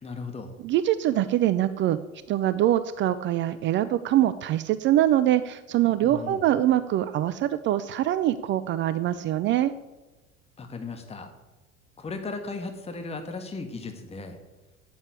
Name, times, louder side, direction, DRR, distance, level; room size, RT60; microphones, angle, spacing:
voice 1, 0.0-0.5 6.0-6.4 10.6-11.3 12.0-14.4, left 3 dB, 15° left, 6 dB, 1.4 m, -36 dB
voice 2, 0.6-2.0 2.3-9.7, right 12 dB, 30° right, 14 dB, 0.5 m, -24 dB
9.5 x 8.7 x 8.4 m, 1.1 s
figure-of-eight pair, 75°, 42 cm